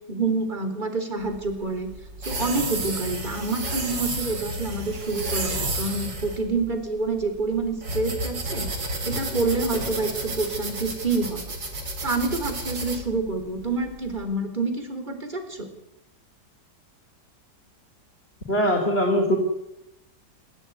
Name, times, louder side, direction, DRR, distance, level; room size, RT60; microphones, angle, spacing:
voice 1, 0.1-1.9 2.3-8.7 9.0-11.4 12.0-15.7, right 3 dB, 25° right, 7 dB, 4.1 m, -27 dB
sound 1, 1.2-14.2, right 2 dB, 80° right, 4.3 m, -31 dB
voice 2, 18.5-19.4, equal, 35° left, 1 dB, 3.4 m, -21 dB
26.5 x 15.0 x 9.5 m, 0.87 s
omnidirectional pair, 1.9 m